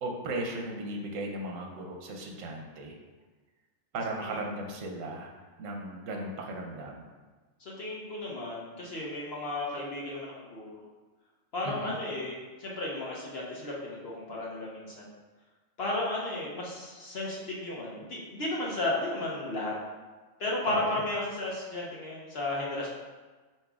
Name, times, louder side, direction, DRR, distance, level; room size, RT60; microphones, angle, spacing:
voice 1, 0.0-3.0 3.9-5.3 5.6-7.1 11.6-12.0 20.7-21.0, right 2 dB, 85° right, 1 dB, 1.0 m, -36 dB
voice 2, 7.6-10.8 11.5-15.1 15.8-19.7 20.4-22.9, left 2 dB, 55° left, -4 dB, 0.9 m, -34 dB
7.2 x 2.7 x 2.3 m, 1.3 s
omnidirectional pair, 1.3 m